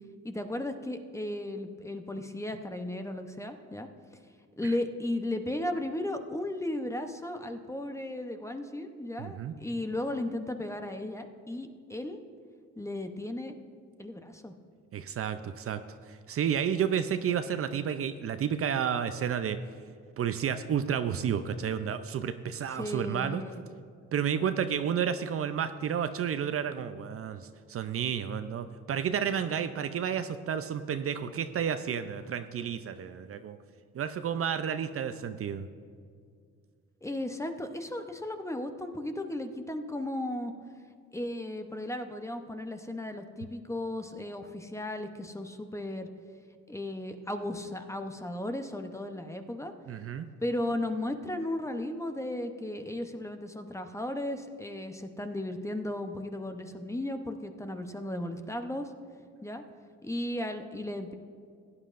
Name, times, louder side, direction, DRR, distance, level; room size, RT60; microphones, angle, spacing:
voice 1, 0.2-3.9 4.6-12.2 12.8-13.5 14.0-14.5 22.8-23.6 37.0-40.5 41.1-46.1 46.7-49.7 50.4-58.9 59.4-59.6 60.0-61.1, left 1 dB, 10° left, 6 dB, 0.7 m, -35 dB
voice 2, 9.2-9.5 14.9-15.8 16.1-19.6 20.2-23.4 24.1-33.6 33.9-35.7 49.9-50.3, right 8 dB, 50° right, 10 dB, 0.5 m, -31 dB
16.0 x 9.7 x 2.5 m, 2.2 s
cardioid pair, 90°, 30 cm